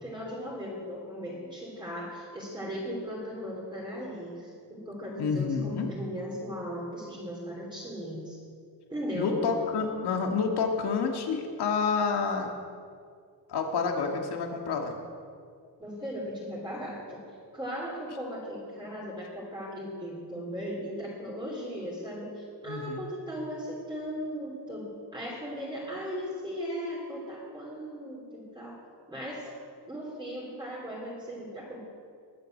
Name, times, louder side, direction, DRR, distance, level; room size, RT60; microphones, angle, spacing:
voice 1, 0.0-8.4 8.9-9.4 15.8-17.2 17.5-28.8 29.1-29.5 29.9-31.8, equal, 10° right, -5 dB, 2.9 m, -37 dB
voice 2, 5.2-5.9 9.1-12.5 13.5-14.9 22.7-23.0, left 5 dB, 70° left, 2 dB, 2.1 m, -29 dB
20.5 x 7.8 x 7.8 m, 2.2 s
wide cardioid pair, 180°, 41 cm